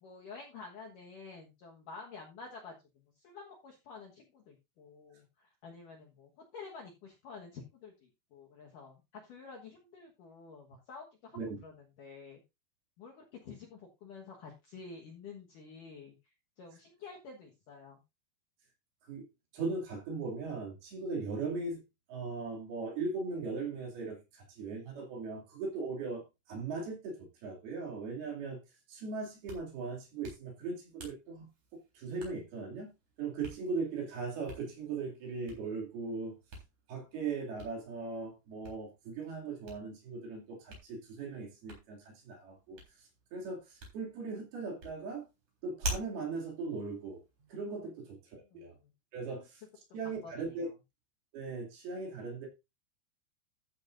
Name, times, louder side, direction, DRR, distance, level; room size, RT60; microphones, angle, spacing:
voice 1, 0.0-11.7 12.0-12.4 13.0-16.1 16.6-18.0 47.8-47.9 48.5-48.7 50.0-50.7, left 4 dB, 65° left, 2.2 m, -50 dB
voice 2, 19.5-21.8 22.1-28.6 28.9-32.9 33.2-36.4 36.9-45.2 45.6-47.2 47.5-48.7 49.1-49.6 49.9-50.7 51.3-52.5, right 4 dB, 55° right, 4.2 m, -39 dB
Hands, 29.2-47.8, right 1 dB, 40° right, 4.8 m, -48 dB
13.5 x 8.4 x 2.6 m
omnidirectional pair, 5.6 m